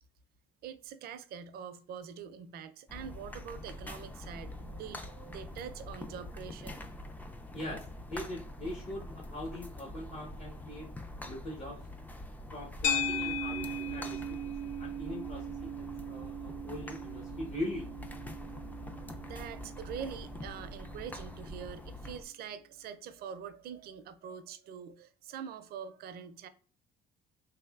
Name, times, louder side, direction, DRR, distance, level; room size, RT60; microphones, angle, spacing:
voice 1, 0.6-6.9 19.2-26.5, right 7 dB, 65° right, 0.5 m, -44 dB
sound 1, 2.9-22.3, left 1 dB, 10° left, 0.3 m, -45 dB
voice 2, 7.5-10.9 11.2-11.9 12.5-14.5 14.8-17.9, left 1 dB, 40° left, 0.9 m, -41 dB
sound 2, 12.8-21.3, left 1 dB, 90° left, 0.6 m, -38 dB
3.3 x 3.2 x 2.3 m
cardioid pair, 110°, 17 cm